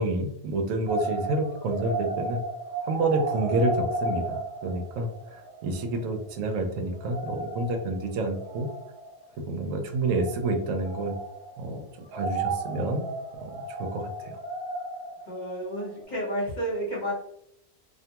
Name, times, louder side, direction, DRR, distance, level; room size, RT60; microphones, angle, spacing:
voice 1, 0.0-2.4 2.9-8.7 9.5-11.2 11.6-13.0 13.4-14.4, right 2 dB, 80° right, 4 dB, 1.0 m, -29 dB
sound 1, 0.9-6.3 6.5-6.6 6.9-9.2 10.0-11.7 12.0-16.0, right 2 dB, 30° right, 0.8 m, -34 dB
voice 2, 15.2-17.1, equal, 35° left, -6 dB, 1.2 m, -31 dB
2.5 x 2.2 x 2.8 m, 0.75 s
omnidirectional pair, 1.3 m